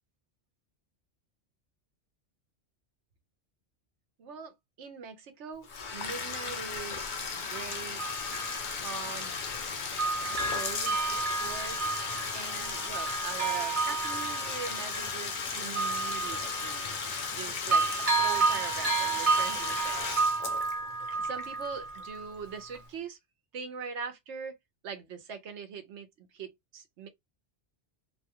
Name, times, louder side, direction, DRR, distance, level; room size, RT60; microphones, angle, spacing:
voice 1, 4.2-8.2 8.8-9.4 10.2-11.0 11.4-11.8 12.3-17.0 17.3-20.5 21.2-23.2 23.5-24.6 24.8-27.1, right 5 dB, 80° right, 1.0 m, -42 dB
Bathtub (filling or washing), 5.6-22.4, left 5 dB, 55° left, 0.6 m, -36 dB
Bell, 6.8-6.9 7.7-9.7 10.0-17.4 17.7-22.3 22.7-22.8, right 4 dB, 35° right, 0.9 m, -31 dB
2.7 x 2.2 x 2.8 m
omnidirectional pair, 1.2 m